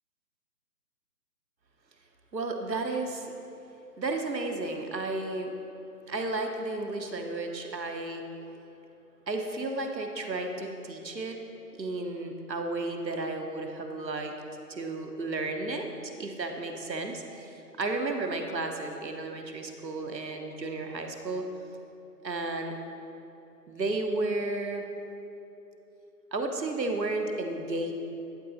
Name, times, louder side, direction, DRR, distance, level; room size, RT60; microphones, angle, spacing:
voice 1, 2.3-3.3 4.0-5.5 6.1-8.2 9.3-11.4 11.8-14.3 14.7-21.5 22.2-22.7 23.7-24.9 26.3-27.9, right 2 dB, 85° right, 4 dB, 1.0 m, -33 dB
11.0 x 4.8 x 4.2 m, 3.0 s
figure-of-eight pair, 150°, 49 cm